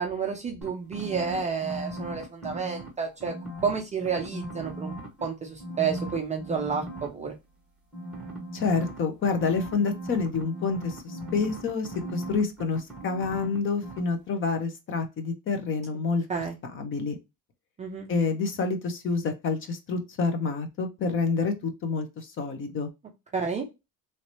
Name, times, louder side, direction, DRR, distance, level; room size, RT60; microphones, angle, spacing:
voice 1, 0.0-3.3 3.6-4.9 5.2-7.4 16.3-16.5 17.8-18.1 23.3-23.6, right 6 dB, 20° right, 1 dB, 0.4 m, -30 dB
sound 1, 0.6-2.9 3.2-5.2 5.6-7.1 7.9-13.6 13.8-14.0, right 1 dB, 5° right, 1.0 m, -38 dB
voice 2, 8.5-16.2 16.7-17.2 18.1-22.9, left 4 dB, 35° left, 7 dB, 0.6 m, -28 dB
3.1 x 2.7 x 2.9 m, 0.24 s
cardioid pair, 155°, 38 cm